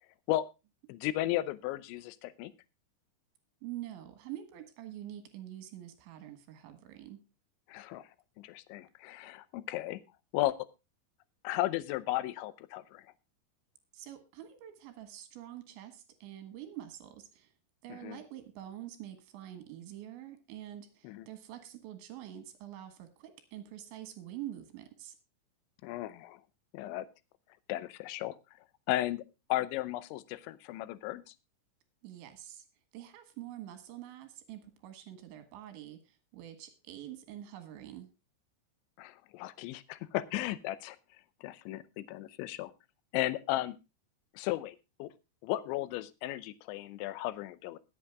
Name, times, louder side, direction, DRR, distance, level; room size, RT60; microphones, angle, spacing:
voice 1, 0.9-2.5 7.7-8.1 8.4-10.0 10.3-10.6 11.4-13.0 17.9-18.2 21.0-21.3 25.8-26.4 26.7-27.1 27.7-28.4 28.9-29.2 29.5-31.2 39.0-41.0 41.4-42.7 43.1-43.8 44.4-45.1 45.4-47.8, left 15 dB, 80° left, 16 dB, 2.9 m, -35 dB
voice 2, 3.6-7.2 13.9-17.5 17.8-25.2 32.0-32.7 32.9-38.1, right 12 dB, 70° right, 9 dB, 3.7 m, -46 dB
21.5 x 8.6 x 2.3 m, 0.27 s
omnidirectional pair, 5.6 m